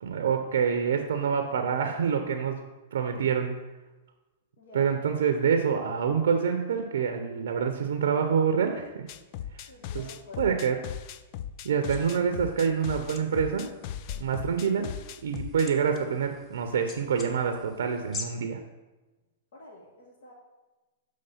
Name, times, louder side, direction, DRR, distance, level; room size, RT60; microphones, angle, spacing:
voice 1, 0.0-2.6 2.9-3.5 4.7-9.0 9.9-10.0 10.4-10.8 11.6-13.7 14.2-14.9 15.2-18.6, right 6 dB, 80° right, 6 dB, 0.5 m, -26 dB
voice 2, 4.6-4.9 9.7-10.5 19.5-20.3, left 2 dB, 70° left, -2 dB, 1.2 m, -49 dB
sound 1, 9.1-15.7, left 10 dB, 45° left, 0.3 m, -38 dB
sound 2, 11.9-18.2, left 3 dB, 25° left, 0.8 m, -46 dB
6.7 x 3.2 x 5.5 m, 1.1 s
hypercardioid pair, 130°, 0 cm